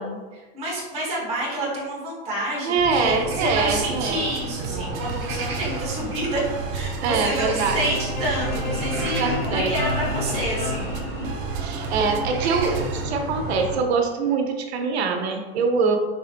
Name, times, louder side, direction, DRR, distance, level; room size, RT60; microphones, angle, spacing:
voice 1, 0.3-6.4 6.7-10.9, right 1 dB, 20° right, -6 dB, 1.3 m, -28 dB
voice 2, 2.6-4.2 7.0-7.8 9.2-9.7 11.6-16.0, right 4 dB, 90° right, 4 dB, 0.7 m, -24 dB
sound 1, 2.8-13.8, right 3 dB, 75° right, 1.3 m, -32 dB
sound 2, 3.4-13.0, right 5 dB, 40° right, 0.5 m, -35 dB
sound 3, 7.1-11.8, left 2 dB, 55° left, 1.0 m, -30 dB
4.8 x 2.8 x 2.5 m, 1.3 s
supercardioid pair, 140°, 31 cm